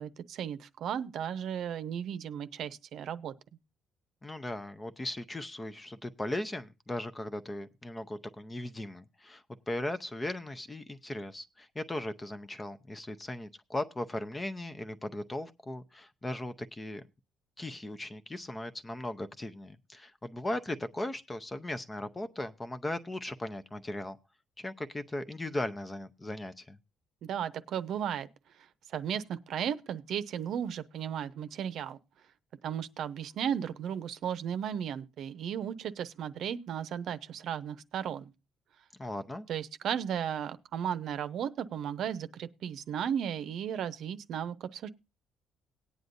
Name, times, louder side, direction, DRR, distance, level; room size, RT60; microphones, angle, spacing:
voice 1, 0.0-3.3 27.2-28.3 28.9-32.0 32.6-38.3 39.5-44.9, right 9 dB, 55° right, 0.8 m, -35 dB
voice 2, 4.2-17.0 17.6-24.2 24.6-26.8 39.0-39.5, left 1 dB, 10° left, 0.6 m, -38 dB
18.0 x 9.5 x 2.6 m
cardioid pair, 160°, 0 cm